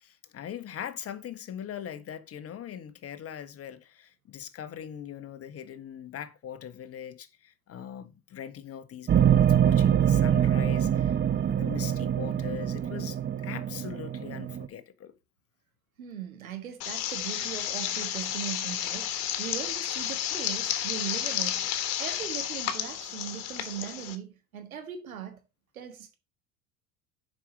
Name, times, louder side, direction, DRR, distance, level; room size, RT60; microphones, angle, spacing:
voice 1, 0.0-13.2 13.4-15.1, left 9 dB, 35° left, 1.2 m, -41 dB
sound 1, 9.1-14.7, right 9 dB, 25° right, 0.8 m, -24 dB
voice 2, 16.0-21.7 22.0-25.4 25.7-26.1, right 9 dB, 85° right, 1.6 m, -39 dB
sound 2, 16.8-24.1, left 11 dB, 60° left, 1.4 m, -32 dB
7.2 x 5.2 x 5.2 m
hypercardioid pair, 75°, 41 cm